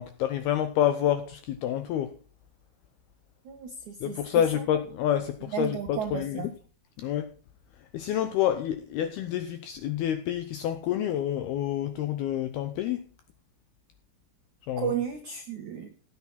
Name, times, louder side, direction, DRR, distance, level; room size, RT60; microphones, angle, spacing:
voice 1, 0.0-2.1 4.0-6.4 7.0-7.3 7.9-13.0 14.7-14.9, left 10 dB, 85° left, 2.2 m, -28 dB
voice 2, 3.5-4.7 5.5-6.5 14.8-15.9, right 8 dB, 85° right, 1.7 m, -33 dB
16.0 x 9.2 x 4.1 m
omnidirectional pair, 5.5 m